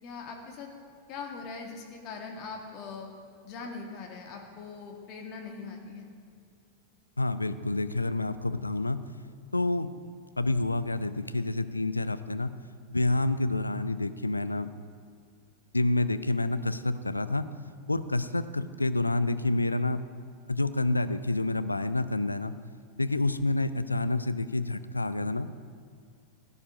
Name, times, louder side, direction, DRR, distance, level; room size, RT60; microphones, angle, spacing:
voice 1, 0.0-0.7 1.1-3.1 3.4-6.1, left 4 dB, 40° left, 1 dB, 2.0 m, -41 dB
voice 2, 7.2-9.0 9.5-9.9 10.4-12.5 12.9-14.7 15.7-17.4 17.9-20.0 20.5-22.5 23.0-25.5, left 2 dB, 85° left, 12 dB, 0.5 m, -28 dB
17.0 x 9.9 x 5.0 m, 2.3 s
figure-of-eight pair, 90°, 0 cm